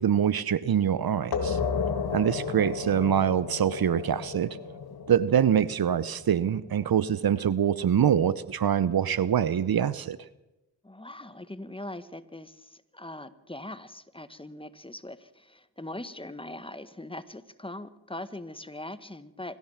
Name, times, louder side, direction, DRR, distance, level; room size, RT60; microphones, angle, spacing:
voice 1, 0.0-1.6 2.1-4.6 5.1-10.2, right 9 dB, 55° right, 17 dB, 0.9 m, -24 dB
sound 1, 1.3-6.7, left 5 dB, 55° left, 2.8 m, -33 dB
voice 2, 10.8-19.6, left 1 dB, 10° left, 12 dB, 1.6 m, -41 dB
25.5 x 14.5 x 7.3 m, 0.95 s
supercardioid pair, 55°, 44 cm